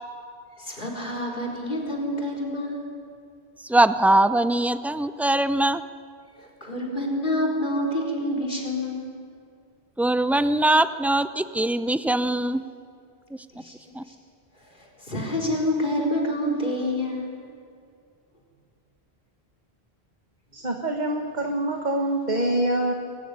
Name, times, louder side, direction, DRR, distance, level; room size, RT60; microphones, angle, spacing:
voice 1, 0.6-2.9 6.4-9.1 13.6-13.7 14.1-14.2 14.7-17.3, left 1 dB, 50° left, 0 dB, 4.5 m, -27 dB
voice 2, 3.6-5.8 10.0-12.6 13.9-14.0, right 1 dB, ahead, 12 dB, 0.4 m, -21 dB
voice 3, 20.5-22.9, right 1 dB, 40° right, 2 dB, 1.7 m, -25 dB
24.5 x 15.0 x 9.7 m, 2.3 s
omnidirectional pair, 1.1 m